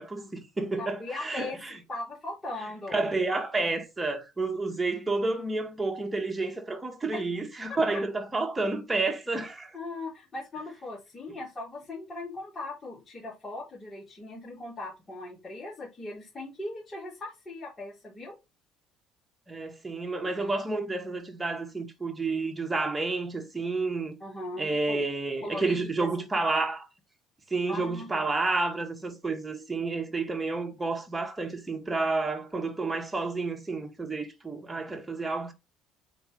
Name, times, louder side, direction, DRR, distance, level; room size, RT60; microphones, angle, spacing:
voice 1, 0.0-1.8 2.9-9.8 19.5-24.2 24.6-26.9 27.5-35.5, right 3 dB, 15° right, 2.3 m, -30 dB
voice 2, 0.8-1.6 1.9-3.0 7.1-7.3 7.7-7.8 9.7-18.4 24.2-25.0 25.4-26.3 27.7-28.1, left 2 dB, 25° left, 4.0 m, -39 dB
7.8 x 5.3 x 3.4 m
supercardioid pair, 75°, 0 cm